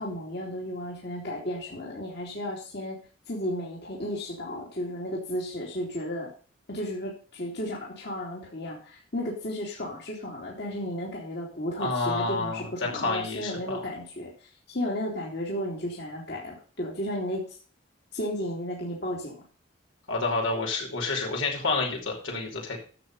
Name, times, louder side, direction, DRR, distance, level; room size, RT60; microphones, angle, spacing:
voice 1, 0.0-3.0 3.3-6.3 6.7-17.4 18.1-19.4, left 1 dB, 55° left, -3 dB, 3.0 m, -34 dB
voice 2, 11.8-12.7 12.9-13.8 20.1-22.8, left 3 dB, 85° left, -1 dB, 5.1 m, -29 dB
11.5 x 7.6 x 5.5 m, 0.40 s
head